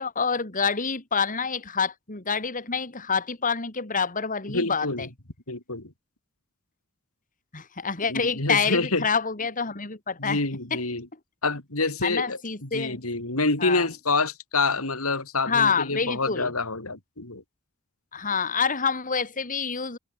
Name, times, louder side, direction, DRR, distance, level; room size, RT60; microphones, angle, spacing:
voice 1, 0.0-5.1 7.5-10.4 10.7-10.8 12.0-13.0 13.6-13.8 15.5-16.5 18.1-20.0, left 5 dB, 40° left, 2.7 m, -27 dB
voice 2, 4.5-5.1 5.5-5.9 8.1-9.1 10.2-11.1 11.4-17.4, left 3 dB, 80° left, 4.1 m, -27 dB
head